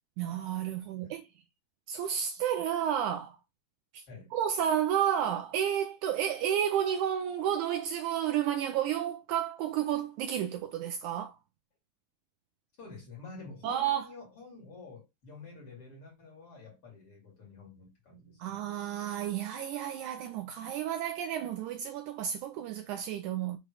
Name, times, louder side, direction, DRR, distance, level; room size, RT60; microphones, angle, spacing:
voice 1, 0.2-1.2 1.9-3.4 3.9-4.0 4.3-11.4 13.6-14.0 18.4-23.6, right 9 dB, 80° right, 1.8 m, -31 dB
voice 2, 0.8-1.2 4.1-4.3 12.8-18.6, left 3 dB, 40° left, 3.1 m, -49 dB
6.8 x 3.2 x 4.7 m
omnidirectional pair, 3.9 m